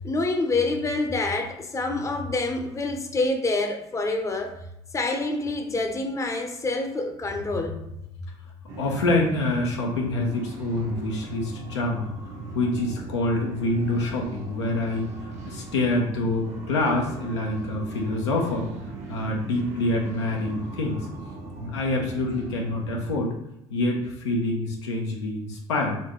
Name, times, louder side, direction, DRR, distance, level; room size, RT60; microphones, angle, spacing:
voice 1, 0.0-4.6 4.9-7.8, left 2 dB, 20° left, 4 dB, 0.7 m, -27 dB
sound 1, 8.7-23.2, right 3 dB, 50° right, 0.9 m, -39 dB
voice 2, 8.8-15.1 15.4-18.7 19.1-21.1 21.6-23.3 23.7-26.0, left 2 dB, 90° left, 0 dB, 0.7 m, -26 dB
4.3 x 2.5 x 3.0 m, 0.85 s
hypercardioid pair, 70°, 14 cm